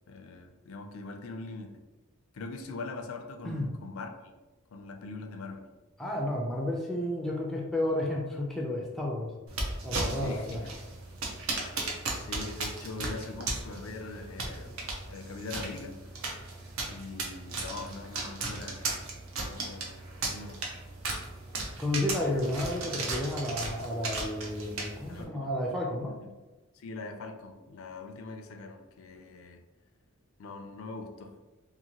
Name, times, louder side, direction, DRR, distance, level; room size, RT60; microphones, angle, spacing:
voice 1, 0.1-1.8 2.3-4.3 4.7-5.7 10.1-10.7 12.1-16.1 16.9-18.9 19.4-20.6 25.1-25.5 26.2-26.3 26.7-29.6 30.4-31.3, left 3 dB, 65° left, 5 dB, 0.4 m, -42 dB
voice 2, 6.0-9.3 9.8-10.6 21.8-26.2, left 1 dB, ahead, -2 dB, 0.4 m, -31 dB
sound 1, 9.5-25.2, right 2 dB, 70° right, 0.6 m, -36 dB
2.8 x 2.5 x 2.8 m, 1.2 s
head